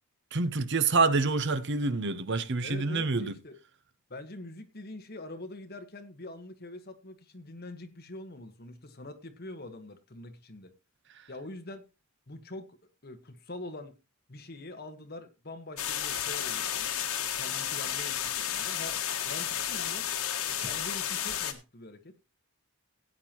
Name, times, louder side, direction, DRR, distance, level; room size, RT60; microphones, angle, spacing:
voice 1, 0.3-3.3, right 3 dB, 55° right, 0.8 m, -27 dB
voice 2, 2.6-3.6 4.1-10.7 11.3-11.8 12.3-12.8 13.0-14.0 14.3-16.9 17.3-20.1 20.6-22.1, left 2 dB, 45° left, 1.4 m, -44 dB
sound 1, 15.8-21.5, left 10 dB, 80° left, 1.5 m, -32 dB
16.5 x 8.8 x 2.9 m
head